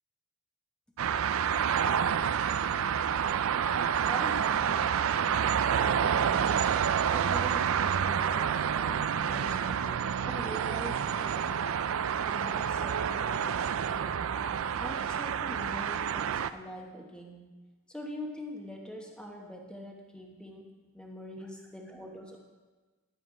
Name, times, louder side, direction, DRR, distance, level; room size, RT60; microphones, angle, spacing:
sound 1, 1.0-16.5, right 8 dB, 65° right, 0.4 m, -28 dB
voice 1, 4.1-6.7 7.1-11.7 12.2-14.3 14.8-17.5 17.9-22.4, equal, 5° left, 1 dB, 0.9 m, -44 dB
12.0 x 7.9 x 4.8 m, 1.3 s
head